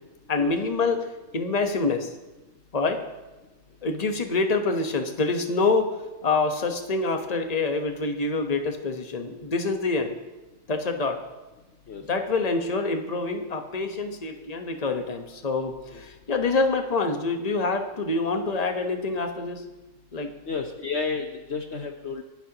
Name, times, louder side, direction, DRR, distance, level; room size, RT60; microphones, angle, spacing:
voice 1, 0.3-1.1 1.3-2.1 2.7-3.0 3.8-5.9 6.2-10.1 10.7-11.2 12.1-19.6 20.1-20.3, left 3 dB, 30° left, 5 dB, 1.3 m, -26 dB
voice 2, 20.5-22.2, left 4 dB, 55° left, 4 dB, 1.1 m, -31 dB
27.5 x 10.5 x 3.0 m, 1.1 s
omnidirectional pair, 1.4 m